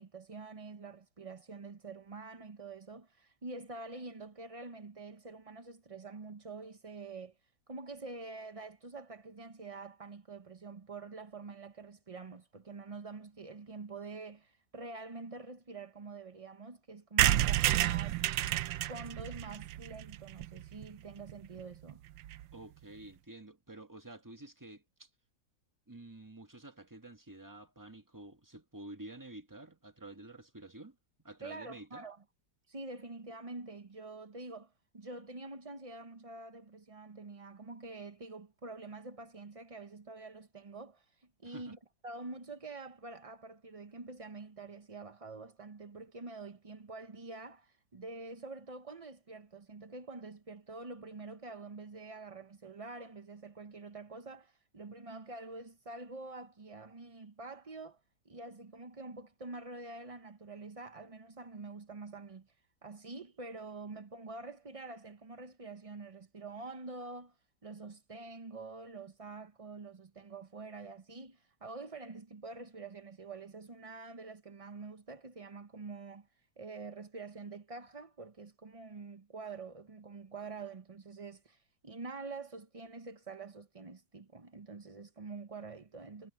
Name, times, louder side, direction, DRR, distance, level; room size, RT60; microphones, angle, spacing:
voice 1, 0.0-7.4 7.7-18.2 18.8-22.0 31.4-32.2 32.7-41.8 42.0-62.5 62.8-67.4 67.6-76.3 76.6-86.3, right 3 dB, 45° right, 0.4 m, -46 dB
sound 1, 17.2-20.9 21.3-21.4 21.6-21.7 21.9-22.0 22.2-22.4, right 14 dB, 80° right, 1.3 m, -30 dB
voice 2, 22.5-25.1 25.9-32.1 41.4-41.7, right 2 dB, 10° right, 1.6 m, -50 dB
omnidirectional pair, 2.1 m